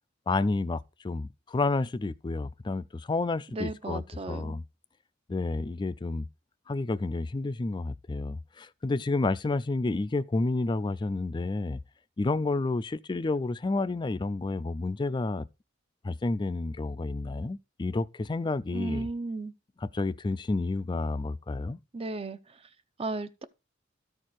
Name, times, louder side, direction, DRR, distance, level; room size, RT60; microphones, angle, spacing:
voice 1, 0.3-4.0 4.3-4.6 5.3-6.3 6.7-11.8 12.2-15.5 16.0-19.1 19.8-21.8, left 3 dB, 25° left, 0.4 m, -30 dB
voice 2, 3.5-4.6 18.7-19.5 21.9-22.4 23.0-23.4, right 2 dB, 30° right, 0.6 m, -34 dB
13.0 x 4.4 x 4.6 m
head